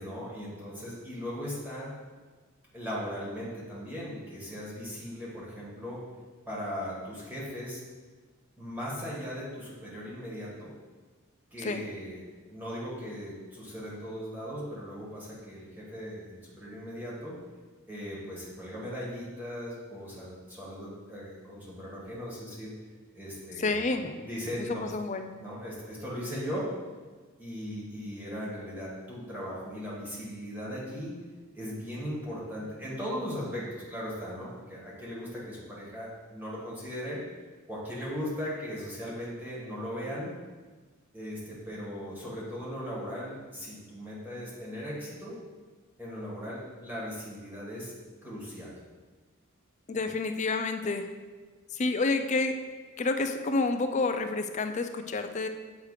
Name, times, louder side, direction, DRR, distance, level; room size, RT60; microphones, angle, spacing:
voice 1, 0.0-1.9 2.7-6.0 6.5-7.8 8.6-10.7 11.5-17.4 17.9-22.7 23.1-23.8 24.2-24.9 25.4-26.7 27.4-31.1 31.5-37.2 37.7-40.3 41.1-45.4 46.0-47.9 48.2-48.7, equal, 10° right, -7 dB, 1.5 m, -38 dB
voice 2, 11.6-12.0 23.6-24.2 24.8-25.3 49.9-51.1 51.7-52.5 53.0-55.5, left 3 dB, 35° left, 7 dB, 0.4 m, -29 dB
8.2 x 3.3 x 4.8 m, 1.4 s
head